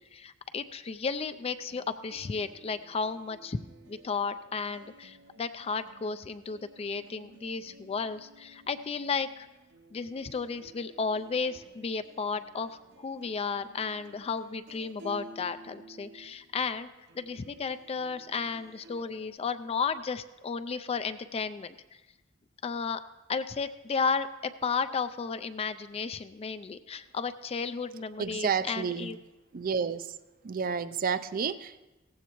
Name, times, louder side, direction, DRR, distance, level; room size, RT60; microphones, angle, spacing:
voice 1, 0.0-3.6 3.9-9.5 9.9-16.9 17.1-21.7 22.6-23.0 23.3-29.2, left 5 dB, 30° left, 12 dB, 0.3 m, -33 dB
sound 1, 1.7-19.3, right 2 dB, 65° right, 0.9 m, -54 dB
voice 2, 28.2-29.1 29.5-30.2 30.4-31.8, right 6 dB, 45° right, 14 dB, 0.5 m, -30 dB
17.0 x 15.0 x 3.0 m, 1.1 s
head